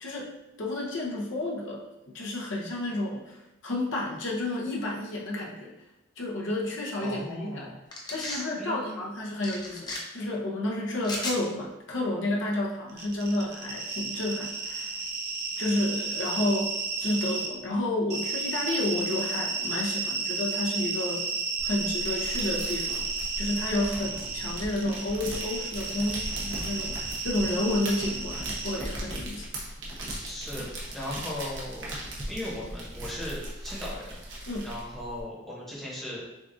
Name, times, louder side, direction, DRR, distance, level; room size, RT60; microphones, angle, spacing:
voice 1, 0.0-1.9 2.1-3.4 3.6-5.7 6.2-7.7 8.1-15.0 15.6-21.3 21.6-23.1 23.4-29.5 34.5-34.7, left 1 dB, 75° left, -2 dB, 0.7 m, -31 dB
voice 2, 7.0-7.8 8.2-9.2 23.9-24.4 30.2-31.9 32.3-34.1 34.6-36.2, left 1 dB, ahead, -6 dB, 1.0 m, -38 dB
sound 1, 7.9-8.4 9.4-10.0 11.0-11.4, left 2 dB, 20° left, 0.6 m, -34 dB
sound 2, 12.9-17.5 18.1-28.8, right 4 dB, 55° right, 0.6 m, -33 dB
sound 3, 21.6-35.2, right 1 dB, 75° right, 1.1 m, -38 dB
6.4 x 2.4 x 2.6 m, 0.93 s
head